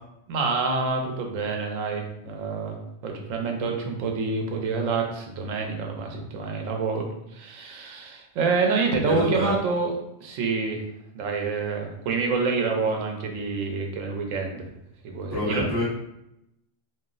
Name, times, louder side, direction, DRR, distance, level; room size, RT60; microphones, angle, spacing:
voice 1, 0.3-2.8 3.0-9.9 10.2-10.8 11.1-14.7 15.0-15.7, right 4 dB, 90° right, 2 dB, 1.0 m, -27 dB
voice 2, 9.1-9.5 15.3-15.8, equal, 15° right, -9 dB, 0.7 m, -26 dB
2.5 x 2.0 x 3.7 m, 0.84 s
omnidirectional pair, 1.3 m